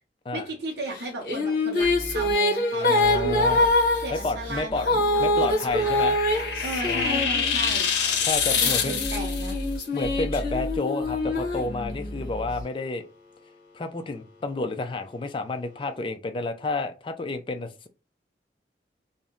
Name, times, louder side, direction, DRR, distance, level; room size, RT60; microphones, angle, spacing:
voice 1, 0.3-3.7 4.0-7.9 8.6-9.6, right 1 dB, 75° right, 0.6 m, -36 dB
Female singing, 0.9-7.9 8.6-12.3, left 2 dB, 55° left, 0.9 m, -25 dB
sound 1, 1.8-2.3 3.0-12.6, equal, 5° right, 0.9 m, -37 dB
voice 2, 2.7-3.6 4.1-6.2 6.9-7.2 8.2-9.0 9.9-13.0 13.7-17.9, left 3 dB, 30° left, 0.3 m, -30 dB
sound 2, 5.4-9.5, left 6 dB, 85° left, 0.6 m, -26 dB
2.6 x 2.1 x 3.6 m
head